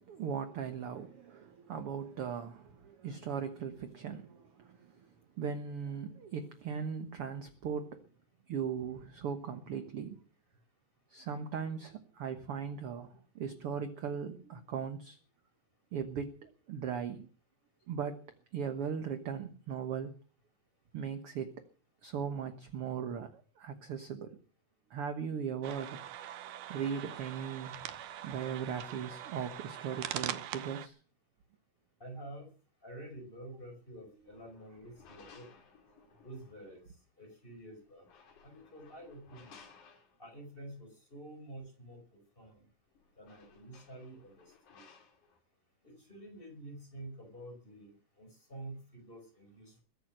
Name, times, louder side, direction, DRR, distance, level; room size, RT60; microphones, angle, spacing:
voice 1, 0.0-4.9 5.4-8.0 8.5-10.2 11.1-15.2 15.9-17.3 17.9-18.2 18.5-20.1 20.9-21.5 22.0-24.4 24.9-26.0 26.7-27.8 28.2-31.0, right 7 dB, 55° right, 1.7 m, -38 dB
sound 1, 25.6-30.9, right 12 dB, 75° right, 2.4 m, -42 dB
voice 2, 32.0-32.5 32.8-35.5 36.2-36.8 37.2-38.1 38.4-39.5 40.2-42.7 43.2-44.8 45.8-47.9 48.2-49.8, right 1 dB, 15° left, 5.4 m, -49 dB
sound 2, 34.1-36.8 37.9-40.5 42.5-42.6 42.9-45.4, left 5 dB, 65° left, 3.9 m, -60 dB
21.5 x 9.3 x 6.4 m
omnidirectional pair, 3.9 m